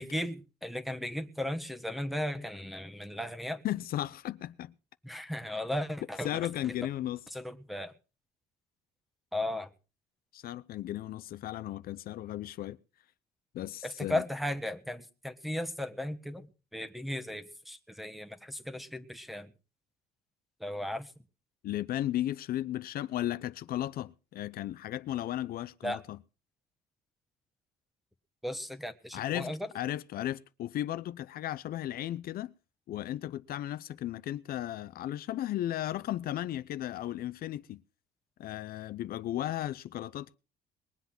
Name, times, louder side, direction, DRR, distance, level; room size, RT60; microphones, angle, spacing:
voice 1, 0.0-3.6 5.0-6.7 7.3-7.9 9.3-9.7 13.8-16.5 16.7-19.5 20.6-21.1 25.8-26.0 28.4-29.7, left 1 dB, ahead, 1.4 m, -36 dB
voice 2, 3.6-4.7 6.2-7.2 10.3-12.8 13.5-14.2 21.6-26.2 29.1-32.5 32.9-37.8 38.4-40.3, left 13 dB, 60° left, 0.6 m, -35 dB
21.0 x 8.1 x 5.9 m
cardioid pair, 110°, 17 cm